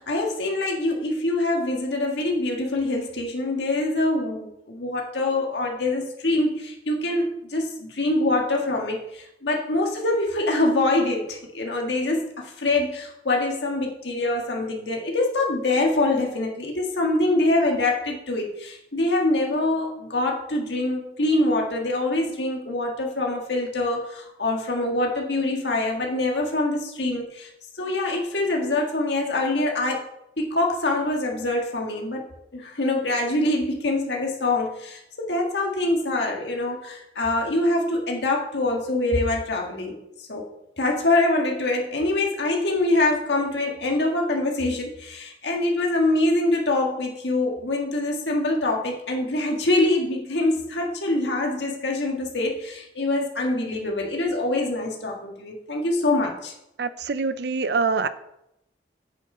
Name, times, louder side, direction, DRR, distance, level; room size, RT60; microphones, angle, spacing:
voice 1, 0.0-27.5 27.8-30.1 30.4-32.2 32.5-40.5 40.8-56.5, left 2 dB, 75° left, 0 dB, 1.7 m, -24 dB
voice 2, 56.8-58.1, right 4 dB, 65° right, 13 dB, 0.5 m, -24 dB
8.2 x 7.1 x 5.4 m, 0.82 s
head